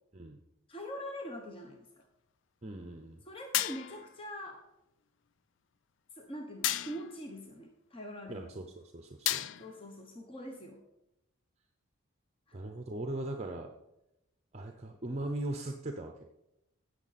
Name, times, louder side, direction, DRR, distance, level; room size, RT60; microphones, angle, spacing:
voice 1, 0.7-2.1 3.2-4.6 6.1-8.5 9.6-10.8 12.5-12.6, equal, 25° left, 2 dB, 0.9 m, -43 dB
voice 2, 2.6-3.2 8.3-9.5 12.5-13.7 14.5-16.2, right 1 dB, 30° right, 4 dB, 0.6 m, -39 dB
sound 1, 3.5-4.1 6.6-7.2 9.3-9.9, left 12 dB, 60° left, 0.3 m, -33 dB
16.5 x 6.5 x 4.1 m, 0.89 s
head